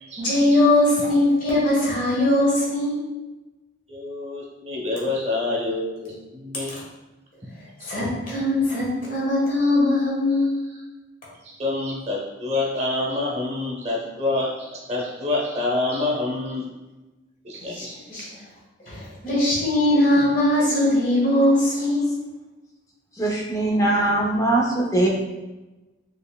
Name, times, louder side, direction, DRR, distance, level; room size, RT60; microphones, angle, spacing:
voice 1, 0.2-3.0 7.8-10.5 17.6-18.4 18.8-22.1, left 1 dB, 45° left, -6 dB, 1.3 m, -21 dB
voice 2, 3.9-6.7 7.8-7.9 11.4-16.6 17.4-17.9, left 2 dB, 35° right, -3 dB, 0.7 m, -27 dB
voice 3, 23.2-25.1, right 2 dB, 15° left, -2 dB, 0.5 m, -21 dB
4.3 x 3.1 x 2.2 m, 1.1 s
head